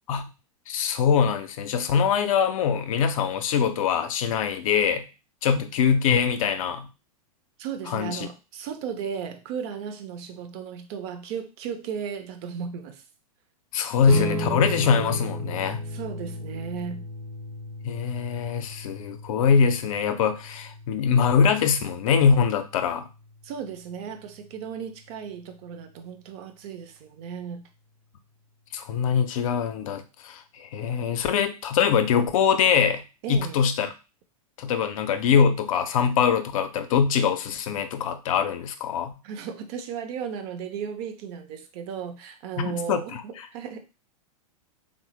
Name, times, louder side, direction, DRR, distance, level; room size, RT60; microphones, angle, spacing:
voice 1, 0.7-5.0 5.4-6.9 7.9-8.2 13.7-15.8 17.8-23.0 28.7-33.0 33.3-33.9 34.6-39.1 42.6-43.5, left 7 dB, 60° left, 0.5 m, -23 dB
voice 2, 7.6-13.0 15.9-17.0 23.4-27.6 33.2-33.6 39.2-43.8, right 7 dB, 45° right, 0.6 m, -35 dB
sound 1, 14.0-24.8, equal, 70° right, 0.8 m, -35 dB
3.3 x 2.1 x 3.1 m
hypercardioid pair, 105°, 19 cm